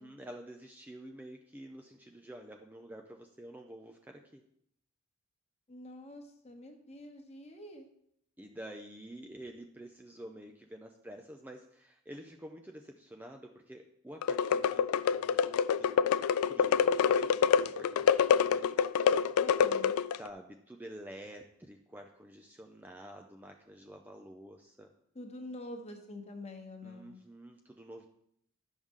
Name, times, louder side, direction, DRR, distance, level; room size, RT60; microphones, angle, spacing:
voice 1, 0.0-4.4 8.4-16.0 16.4-18.8 20.1-24.9 26.8-28.1, right 1 dB, 10° right, 3 dB, 0.4 m, -49 dB
voice 2, 5.7-7.9 19.4-20.0 25.1-27.2, left 1 dB, 30° left, 4 dB, 1.1 m, -46 dB
sound 1, 14.2-20.3, left 7 dB, 80° left, 0.3 m, -27 dB
10.5 x 6.3 x 3.7 m, 0.71 s
head